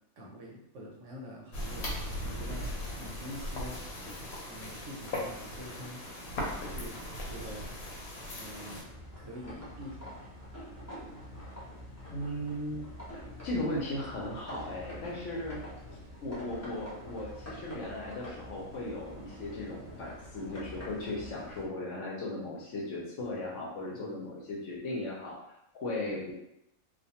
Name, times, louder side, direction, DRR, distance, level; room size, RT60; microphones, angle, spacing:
voice 1, 0.2-1.9 2.2-2.7 3.0-3.8 4.5-6.0 6.5-7.0 7.3-7.7 8.3-8.9 9.2-10.3 23.9-24.2, equal, 65° right, -2 dB, 0.9 m, -45 dB
sound 1, 1.5-8.8, left 1 dB, 85° left, 1.1 m, -38 dB
sound 2, 8.8-21.6, left 1 dB, 20° left, 0.4 m, -46 dB
voice 2, 12.1-12.8 13.1-15.6 16.2-25.4 25.7-26.3, left 1 dB, 65° left, -3 dB, 0.9 m, -37 dB
2.4 x 2.2 x 2.8 m, 0.78 s
omnidirectional pair, 1.5 m